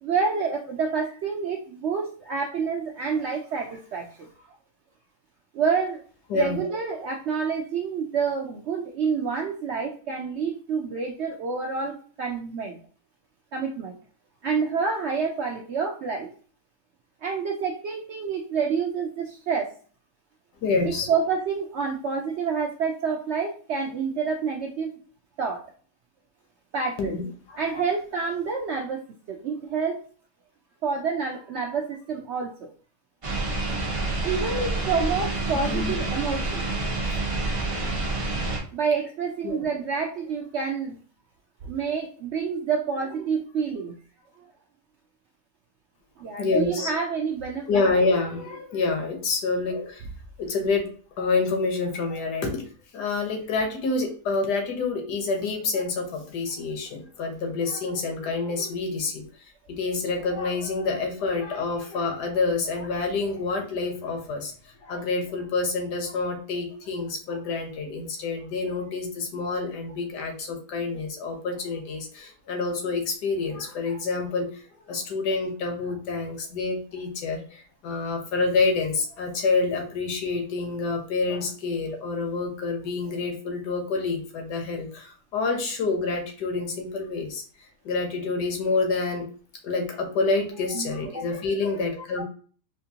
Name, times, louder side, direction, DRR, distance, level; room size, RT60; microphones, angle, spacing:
voice 1, 0.0-4.3 5.5-6.0 6.3-12.8 13.5-14.0 14.4-16.3 17.2-19.7 20.8-24.9 25.4-25.6 26.7-27.2 27.6-29.0 29.3-30.0 30.8-32.7 34.2-36.6 38.7-41.0 41.6-43.9 46.2-47.8 90.7-91.2 92.2-92.3, right 5 dB, 75° right, 2 dB, 0.6 m, -28 dB
voice 2, 20.6-21.1 27.0-27.2 27.5-27.8 35.5-36.0 36.3-36.4 39.4-39.6 46.4-46.9 47.7-50.1 50.4-50.9 51.2-52.6 52.9-59.2 59.7-87.4 87.8-89.2 89.6-92.2, left 3 dB, 85° left, 3 dB, 1.5 m, -27 dB
sound 1, 33.2-38.6, right 2 dB, 30° right, 0.6 m, -28 dB
4.3 x 2.5 x 2.7 m, 0.41 s
omnidirectional pair, 1.7 m